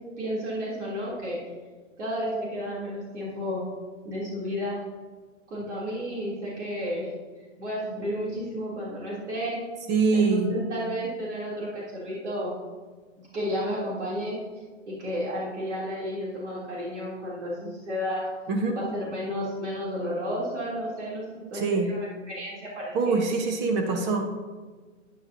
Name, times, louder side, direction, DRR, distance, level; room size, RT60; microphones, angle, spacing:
voice 1, 0.2-1.4 2.0-3.6 4.0-4.8 5.5-7.1 7.6-9.6 10.1-12.5 13.2-14.4 14.9-18.3 18.7-23.1, equal, 65° right, -6 dB, 3.2 m, -32 dB
voice 2, 9.9-10.5 18.5-18.8 21.5-21.9 22.9-24.2, right 4 dB, 25° right, 4 dB, 1.3 m, -24 dB
11.0 x 9.6 x 2.8 m, 1.4 s
hypercardioid pair, 120°, 38 cm